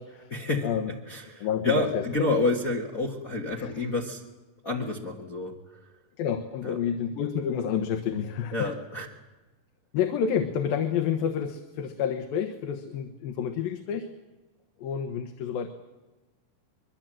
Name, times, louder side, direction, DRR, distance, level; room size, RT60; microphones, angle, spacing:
voice 1, 0.3-0.7 1.1-4.2 4.6-5.8 6.6-6.8 8.5-9.1, left 2 dB, 45° left, 0 dB, 1.1 m, -29 dB
voice 2, 1.4-2.3 3.6-3.7 6.2-8.7 9.9-14.1 14.8-15.7, left 8 dB, 80° left, 6 dB, 2.9 m, -29 dB
24.0 x 22.5 x 7.6 m, 1.2 s
omnidirectional pair, 4.1 m